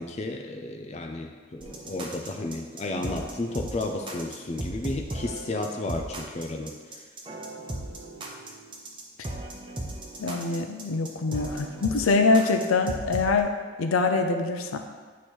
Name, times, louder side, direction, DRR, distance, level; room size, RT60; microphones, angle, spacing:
voice 1, 0.0-7.1 12.0-12.1, left 2 dB, 30° left, 3 dB, 0.4 m, -33 dB
sound 1, 1.6-13.4, right 1 dB, 25° right, 0.6 m, -37 dB
voice 2, 10.2-13.5 13.8-14.8, left 3 dB, 90° left, 5 dB, 0.6 m, -24 dB
8.3 x 3.1 x 4.4 m, 1.5 s
head